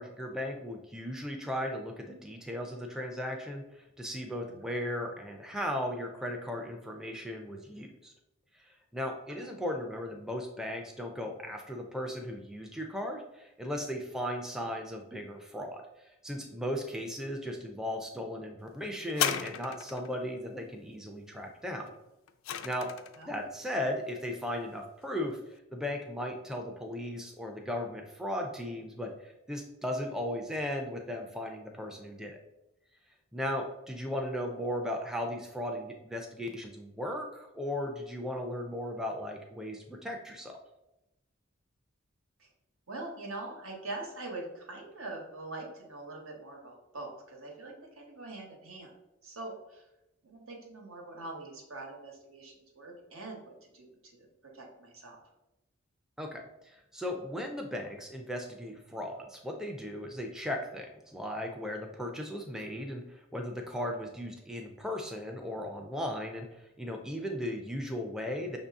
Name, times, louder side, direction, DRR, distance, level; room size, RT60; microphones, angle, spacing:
voice 1, 0.0-8.1 8.5-15.8 16.2-21.9 22.6-22.9 23.3-32.4 33.3-40.5 56.2-68.6, left 1 dB, 5° right, 2 dB, 0.4 m, -37 dB
sound 1, 19.1-20.2 21.9-23.2 24.0-24.1, left 9 dB, 75° left, 0.3 m, -34 dB
voice 2, 42.9-48.9 49.2-49.8 50.2-54.3 54.5-55.2, right 2 dB, 85° right, 0 dB, 1.2 m, -43 dB
5.6 x 2.7 x 3.5 m, 0.91 s
head